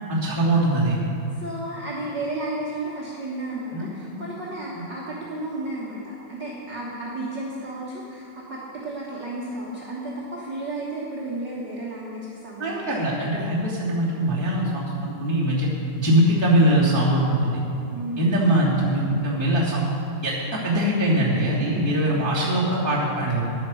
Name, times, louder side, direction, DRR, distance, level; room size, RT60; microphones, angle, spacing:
voice 1, 0.1-1.0 3.7-4.1 12.6-15.7 15.9-17.6 18.2-19.8 20.2-23.4, right 1 dB, 10° left, -7 dB, 1.5 m, -22 dB
voice 2, 1.3-13.1 13.3-13.4 17.9-18.4 22.2-22.3, right 2 dB, 50° right, -5 dB, 1.3 m, -33 dB
11.0 x 9.7 x 6.5 m, 2.6 s
omnidirectional pair, 4.2 m